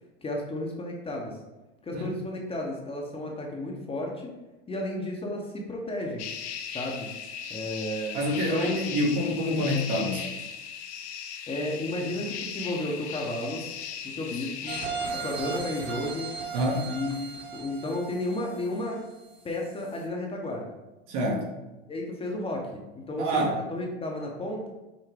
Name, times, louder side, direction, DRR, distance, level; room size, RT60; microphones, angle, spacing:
voice 1, 0.2-1.4 1.8-4.3 4.7-6.3 6.7-7.1 7.5-8.8 11.5-13.7 14.0-14.8 15.1-16.3 16.9-17.3 17.5-19.0 19.4-20.8 21.9-24.7, left 1 dB, 15° left, 0 dB, 0.7 m, -33 dB
sound 1, 6.2-14.9, left 7 dB, 85° left, 0.6 m, -37 dB
voice 2, 8.1-10.3 16.5-16.9 21.1-21.5 23.2-23.6, equal, 60° right, 0 dB, 1.2 m, -27 dB
sound 2, 14.7-19.4 19.8-19.9, right 4 dB, 35° right, 1.2 m, -36 dB
5.8 x 2.2 x 3.4 m, 1.0 s
supercardioid pair, 110°, 32 cm